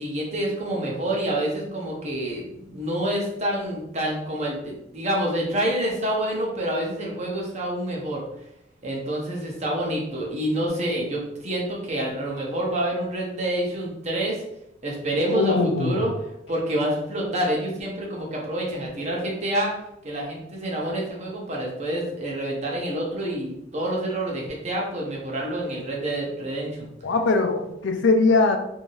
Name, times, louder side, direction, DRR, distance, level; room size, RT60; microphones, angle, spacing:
voice 1, 0.0-8.2 8.8-14.4 14.8-16.1 16.5-19.7 20.0-26.9, right 1 dB, 40° right, -2 dB, 0.8 m, -27 dB
voice 2, 15.3-16.0 27.0-28.6, left 3 dB, 80° left, 6 dB, 0.4 m, -21 dB
3.2 x 2.7 x 2.6 m, 0.82 s
head